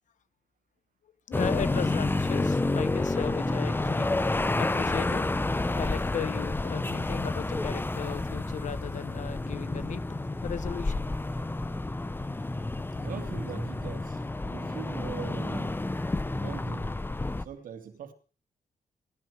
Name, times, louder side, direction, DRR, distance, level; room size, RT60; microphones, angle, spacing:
voice 1, 1.3-4.1 4.6-5.3 5.8-10.0 10.4-11.1 12.8-12.9, left 8 dB, 65° left, 1.0 m, -36 dB
sound 1, 1.3-17.4, left 2 dB, 15° left, 1.0 m, -30 dB
voice 2, 13.0-15.9 16.4-17.0 17.4-18.1, right 8 dB, 80° right, 2.7 m, -42 dB
18.0 x 14.5 x 4.8 m
cardioid pair, 95°, 14 cm